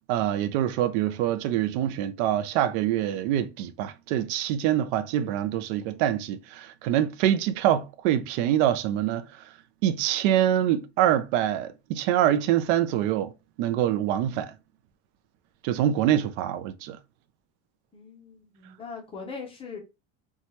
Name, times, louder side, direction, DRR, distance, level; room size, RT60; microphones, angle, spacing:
voice 1, 0.1-9.4 9.8-13.3 13.6-14.5 15.6-17.0, right 11 dB, 85° right, 0.5 m, -25 dB
voice 2, 17.9-19.8, left 5 dB, 15° left, 0.4 m, -40 dB
2.8 x 2.2 x 3.0 m
cardioid pair, 175°, 34 cm